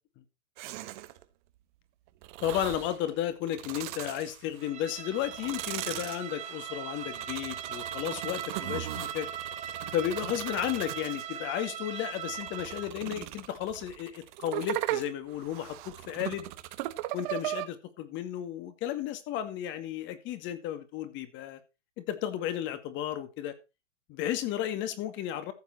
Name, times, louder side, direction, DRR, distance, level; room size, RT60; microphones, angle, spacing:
sound 1, 0.6-1.2 2.2-3.0 3.4-4.7 5.1-11.4 12.0-17.7, right 16 dB, 40° right, 1.4 m, -38 dB
voice 1, 2.4-9.3 9.9-16.5 17.1-21.6 22.0-23.6 24.1-25.5, left 11 dB, 30° left, 10 dB, 2.2 m, -33 dB
Bowed string instrument, 4.6-13.0, right 8 dB, 20° right, 2.4 m, -40 dB
14.5 x 7.5 x 4.2 m, 0.28 s
hypercardioid pair, 125°, 36 cm